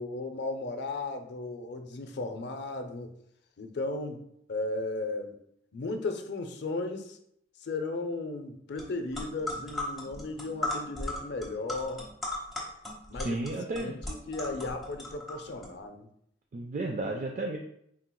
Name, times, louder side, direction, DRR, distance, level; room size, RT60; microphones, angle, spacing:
voice 1, 0.0-3.1 3.6-4.2 4.5-5.3 5.7-7.2 7.6-12.1 13.1-13.4 13.8-16.1, left 2 dB, 65° left, 6 dB, 0.5 m, -35 dB
sound 1, 8.8-8.9 9.1-15.7, left 2 dB, ahead, 1.0 m, -37 dB
voice 2, 13.1-13.9 16.5-17.6, right 2 dB, 40° right, 2 dB, 0.3 m, -33 dB
4.4 x 3.7 x 2.2 m, 0.73 s
head